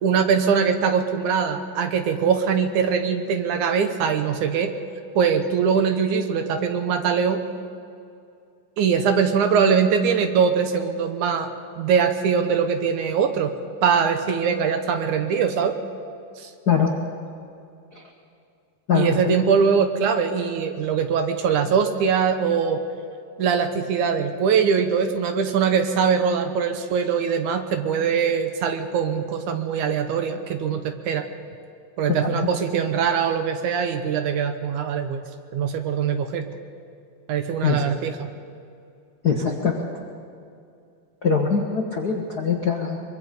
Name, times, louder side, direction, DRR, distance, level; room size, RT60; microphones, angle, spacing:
voice 1, 0.0-4.7 5.2-7.4 8.8-11.5 11.8-13.5 13.8-15.7 16.4-16.5 18.9-22.8 23.4-31.2 32.0-35.2 35.5-36.5 37.3-38.3, right 6 dB, 70° right, 7 dB, 2.3 m, -22 dB
voice 2, 39.2-39.8 41.2-43.0, left 6 dB, 55° left, 1 dB, 1.1 m, -22 dB
24.0 x 23.5 x 5.3 m, 2.5 s
omnidirectional pair, 4.0 m